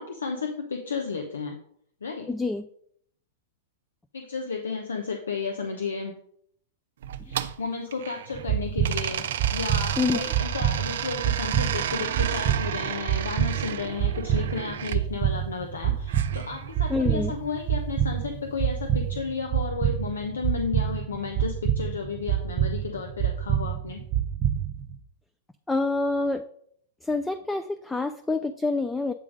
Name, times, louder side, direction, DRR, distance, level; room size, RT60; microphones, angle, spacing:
voice 1, 0.0-1.6 2.0-2.3 4.1-6.1 7.2-9.2 9.5-24.0, left 5 dB, 80° left, 4 dB, 0.8 m, -33 dB
voice 2, 2.3-2.7 10.0-10.2 16.9-17.3 25.7-26.4 27.0-29.1, left 3 dB, 5° left, 9 dB, 0.4 m, -26 dB
sound 1, 7.0-8.4 8.8-15.0 16.1-17.2, right 10 dB, 65° right, 0.5 m, -33 dB
sound 2, 8.3-25.0, right 10 dB, 40° right, 0.8 m, -27 dB
8.5 x 3.6 x 5.1 m, 0.67 s
hypercardioid pair, 105°, 0 cm